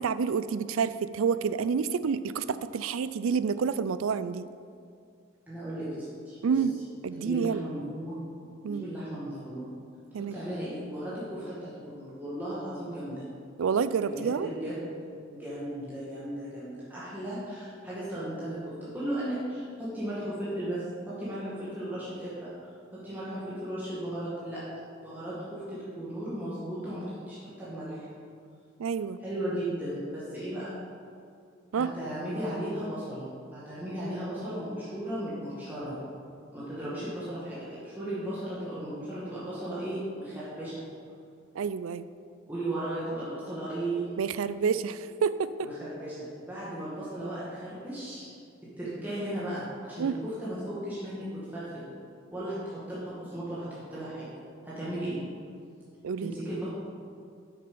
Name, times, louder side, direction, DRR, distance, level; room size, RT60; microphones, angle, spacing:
voice 1, 0.0-4.5 6.4-6.7 7.0-7.6 8.6-8.8 10.1-10.4 13.6-14.5 28.8-29.2 31.7-31.9 41.5-42.1 44.2-45.7 50.0-50.2 56.0-56.4, right 6 dB, 90° right, 14 dB, 0.4 m, -28 dB
voice 2, 5.5-6.6 7.1-8.2 8.7-9.7 10.2-13.2 14.1-14.8 15.3-24.6 25.0-28.1 29.2-30.7 31.7-36.0 36.5-40.7 42.5-44.1 45.6-48.3 48.8-51.8 52.3-54.3 54.6-55.2 56.2-56.7, right 1 dB, 10° right, -10 dB, 1.9 m, -36 dB
8.3 x 6.8 x 5.5 m, 2.3 s
head